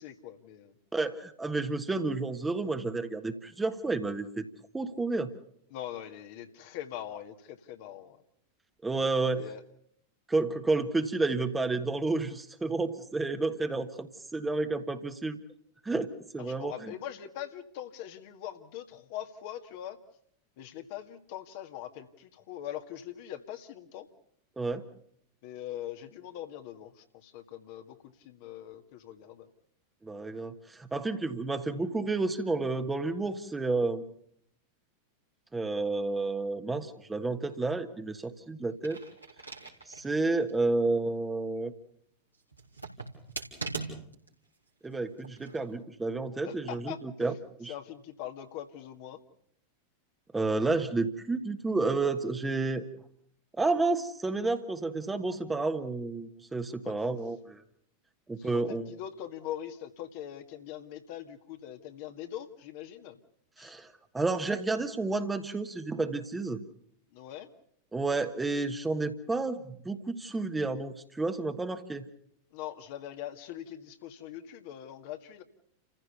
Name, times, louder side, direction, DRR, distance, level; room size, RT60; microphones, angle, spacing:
voice 1, 0.0-0.7 5.7-8.2 9.4-9.6 16.4-20.0 20.6-24.1 25.4-28.0 28.2-29.5 46.4-47.4 47.7-49.2 56.8-57.0 58.4-63.2 63.6-63.7 67.1-67.5 72.5-75.4, left 11 dB, 50° left, 6 dB, 1.8 m, -42 dB
voice 2, 0.9-4.4 4.7-5.3 8.8-9.5 10.3-15.4 15.8-16.7 24.6-24.9 30.0-34.0 35.5-39.0 39.9-41.7 44.8-47.3 47.6-47.7 50.3-52.9 53.6-57.6 58.3-58.9 63.6-66.6 67.9-72.0, right 3 dB, 10° right, 7 dB, 1.5 m, -30 dB
sound 1, 38.7-40.1 40.5-40.6 42.5-44.3 45.2-45.6, right 4 dB, 85° right, 3.8 m, -40 dB
29.5 x 15.0 x 6.9 m, 0.67 s
figure-of-eight pair, 90°, 0 cm